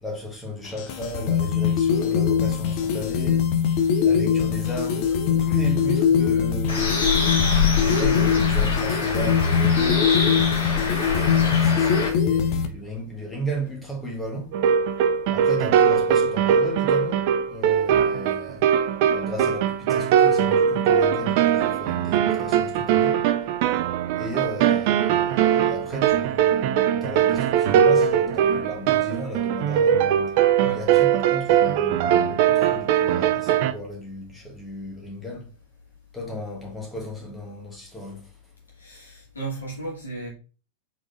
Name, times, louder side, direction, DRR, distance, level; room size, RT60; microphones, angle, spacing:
voice 1, 0.0-3.5 4.0-7.1 7.7-10.1 10.7-14.6 15.3-23.2 24.2-30.1 30.7-35.5 36.1-38.4, equal, 15° left, 1.2 m, -35 dB
sound 1, 0.7-12.7, left 7 dB, 45° left, 0.7 m, -22 dB
Bird, 6.7-12.1, left 4 dB, 60° left, 1.5 m, -25 dB
sound 2, 14.5-33.7, right 9 dB, 50° right, 0.3 m, -21 dB
voice 2, 38.8-40.3, right 3 dB, 75° left, 2.0 m, -34 dB
4.6 x 4.1 x 2.5 m
figure-of-eight pair, 90°, 0 cm